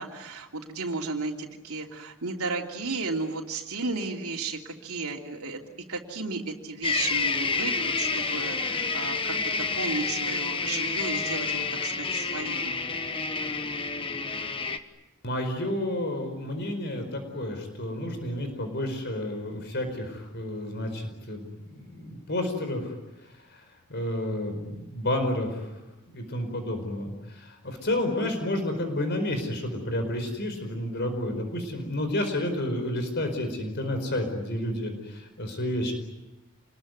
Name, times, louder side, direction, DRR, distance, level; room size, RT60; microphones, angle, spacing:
voice 1, 0.0-5.6 5.9-12.7, right 3 dB, 80° right, 1 dB, 3.1 m, -34 dB
sound 1, 6.8-14.8, left 4 dB, 25° left, 1.3 m, -29 dB
voice 2, 15.2-22.9 23.3-23.6 23.9-25.7 26.1-35.9, left 1 dB, 50° left, 6 dB, 4.7 m, -30 dB
28.5 x 21.5 x 9.5 m, 0.99 s
head